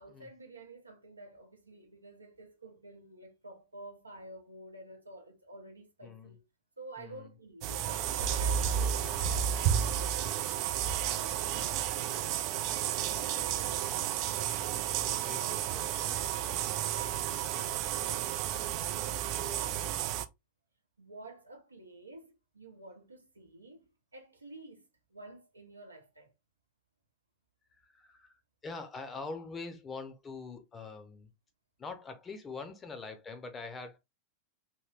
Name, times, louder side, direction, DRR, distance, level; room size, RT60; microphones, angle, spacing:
voice 1, 0.0-6.4 6.8-7.9 8.2-10.4 10.8-12.4 12.8-13.9 17.5-19.9 21.0-26.3, right 2 dB, 80° right, 0.7 m, -51 dB
voice 2, 6.0-6.4 7.0-7.3 8.5-8.8 12.9-13.7 14.9-16.2 17.5-17.6 27.7-31.3 31.8-34.0, left 4 dB, 20° left, 0.6 m, -45 dB
sound 1, 7.6-20.2, right 10 dB, 40° right, 0.3 m, -32 dB
3.0 x 2.9 x 2.4 m
figure-of-eight pair, 90°, 0 cm